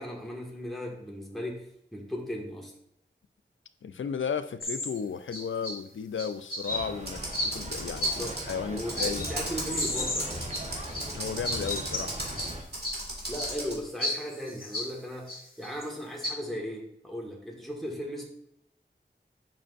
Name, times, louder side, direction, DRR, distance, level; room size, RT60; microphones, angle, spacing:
voice 1, 0.0-2.7 7.9-8.4 8.7-10.5 13.3-18.3, equal, ahead, -2 dB, 1.6 m, -37 dB
voice 2, 3.8-9.3 11.1-12.1, left 6 dB, 85° left, 12 dB, 0.4 m, -34 dB
sound 1, 4.6-5.0 5.3-5.8 6.2-6.8 7.3-7.6 8.0-8.4 8.9-9.3 9.6-11.1 11.4-12.5 12.8-13.0 13.4-13.6 14.0-14.9 15.3-15.8 16.2-16.3, left 1 dB, 50° left, 1.8 m, -32 dB
sound 2, 6.7-12.6, right 1 dB, 35° right, 1.1 m, -40 dB
Computer keyboard, 7.0-13.8, right 1 dB, 55° right, 2.2 m, -37 dB
7.5 x 5.5 x 2.5 m, 0.77 s
wide cardioid pair, 50°, 19 cm